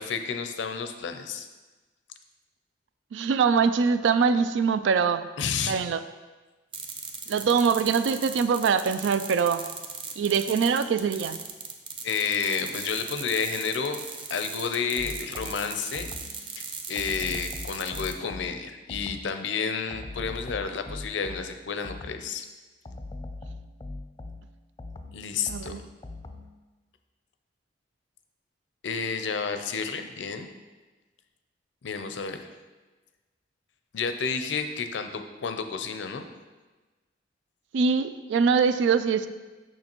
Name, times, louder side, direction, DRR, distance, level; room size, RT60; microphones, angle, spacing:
voice 1, 0.0-1.5 5.4-5.7 12.0-14.0 14.3-16.1 16.4-22.5 25.1-25.7 28.8-30.5 31.8-32.5 33.9-36.3, left 5 dB, 75° left, 7 dB, 0.5 m, -31 dB
voice 2, 3.1-5.3 5.7-6.0 7.3-9.6 10.2-11.4 25.5-25.8 37.7-39.3, right 5 dB, 80° right, 12 dB, 0.3 m, -23 dB
sound 1, 6.7-18.1, right 5 dB, 30° right, 0.5 m, -38 dB
sound 2, 15.0-16.5 17.0-19.4 19.9-22.4 22.8-26.6, left 2 dB, 25° left, 0.4 m, -41 dB
6.4 x 6.2 x 3.0 m, 1.2 s
head